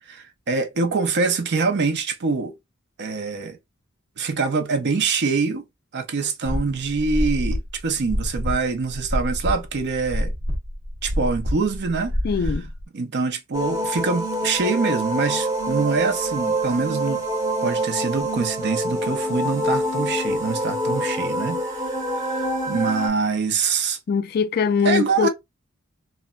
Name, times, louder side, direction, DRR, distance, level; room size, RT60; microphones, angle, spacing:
voice 1, 0.1-2.5 3.0-3.6 4.2-5.6 5.9-10.3 11.0-12.2 12.9-17.2 17.6-24.0 24.8-25.3, right 4 dB, 55° right, 0.5 m, -24 dB
sound 1, 6.4-12.8, equal, 90° right, 1.0 m, -27 dB
voice 2, 12.2-12.7 24.1-25.3, left 6 dB, 45° left, 0.3 m, -22 dB
sound 2, 13.5-23.1, right 1 dB, 15° right, 0.9 m, -26 dB
3.1 x 2.1 x 2.3 m
head